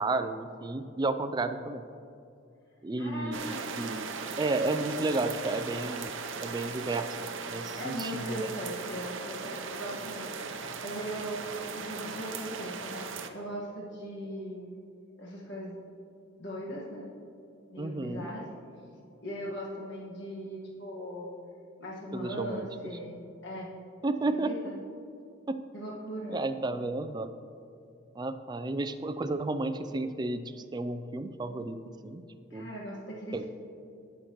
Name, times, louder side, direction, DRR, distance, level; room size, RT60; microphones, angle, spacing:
voice 1, 0.0-1.8 2.8-4.1 4.4-6.1 6.4-8.5 17.8-18.3 22.1-22.7 24.0-24.5 25.5-25.6 26.3-27.3 28.2-31.8 32.0-32.2 32.5-32.7 33.3-33.4, right 2 dB, 20° right, 9 dB, 0.3 m, -32 dB
voice 2, 3.0-3.6 7.8-10.3 10.6-14.7 15.2-15.8 16.4-17.1 17.7-18.5 19.2-21.4 21.8-23.7 24.3-24.7 25.7-26.4 32.5-33.5, equal, 55° left, -4 dB, 1.5 m, -39 dB
sound 1, 3.3-13.3, right 5 dB, 65° right, 0.6 m, -38 dB
18.0 x 6.5 x 3.0 m, 2.6 s
head